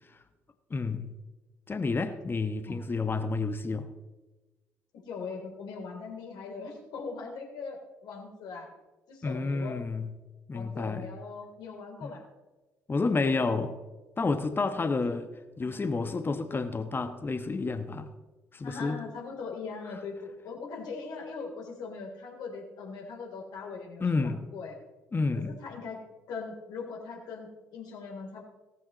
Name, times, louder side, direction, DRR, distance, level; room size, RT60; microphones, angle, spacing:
voice 1, 0.7-1.1 1.7-3.9 9.2-10.1 10.5-11.1 12.0-12.1 12.9-13.7 14.2-15.3 15.6-18.1 18.5-19.0 24.0-24.4 25.1-25.5, left 3 dB, 30° left, 9 dB, 1.2 m, -30 dB
voice 2, 5.1-8.7 9.1-9.8 10.5-12.2 15.0-15.2 15.6-16.2 18.6-24.8 25.3-26.0 26.3-28.4, left 4 dB, 65° left, 0 dB, 3.5 m, -40 dB
17.5 x 14.0 x 3.1 m, 1.2 s
figure-of-eight pair, 45°, 8 cm